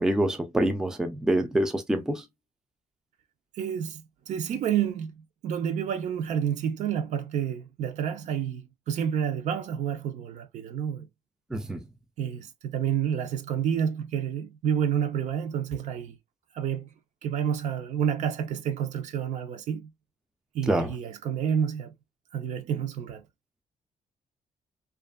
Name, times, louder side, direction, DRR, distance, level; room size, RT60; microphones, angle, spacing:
voice 1, 0.0-2.2 11.5-11.8 20.7-20.9, right 1 dB, 5° right, 0.3 m, -26 dB
voice 2, 3.5-5.1 5.4-11.1 12.2-16.2 16.5-16.9 17.2-19.9 20.5-21.9 22.3-23.2, right 8 dB, 75° right, 0.5 m, -29 dB
2.8 x 2.4 x 2.2 m
cardioid pair, 165°, 12 cm